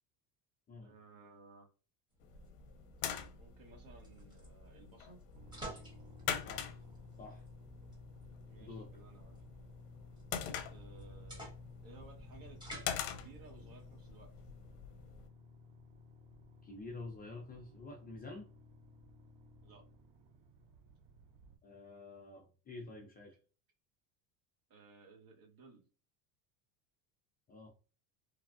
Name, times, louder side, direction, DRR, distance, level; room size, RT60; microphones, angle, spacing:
voice 1, 0.8-1.7 3.4-5.2 8.5-9.4 10.7-11.6 11.8-14.3 19.6-19.8 24.7-25.8, right 3 dB, 50° right, 1.2 m, -58 dB
sound 1, 2.1-14.6, right 1 dB, 10° right, 1.1 m, -55 dB
sound 2, 2.2-15.3, left 8 dB, 70° left, 0.7 m, -45 dB
sound 3, 5.3-21.6, left 2 dB, 65° right, 0.8 m, -56 dB
voice 2, 6.4-6.8 7.2-7.4 8.6-8.9 16.6-18.5 21.6-23.4 27.5-27.7, left 3 dB, 20° left, 0.4 m, -49 dB
3.3 x 2.0 x 2.5 m
supercardioid pair, 125°, 46 cm